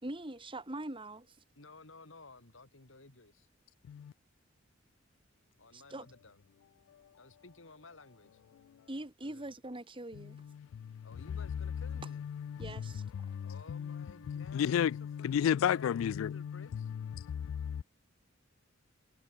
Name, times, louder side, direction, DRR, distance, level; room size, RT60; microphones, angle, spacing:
voice 1, 0.0-1.4 5.7-6.1 8.9-10.4 12.6-13.0, right 1 dB, 25° right, 2.4 m, -42 dB
voice 2, 1.5-3.5 5.6-6.4 7.2-8.4 9.2-9.5 11.0-12.3 13.4-16.9, left 3 dB, 70° left, 2.9 m, -55 dB
voice 3, 12.2-12.6 13.1-16.7 17.2-17.8, left 9 dB, 85° left, 0.3 m, -33 dB
head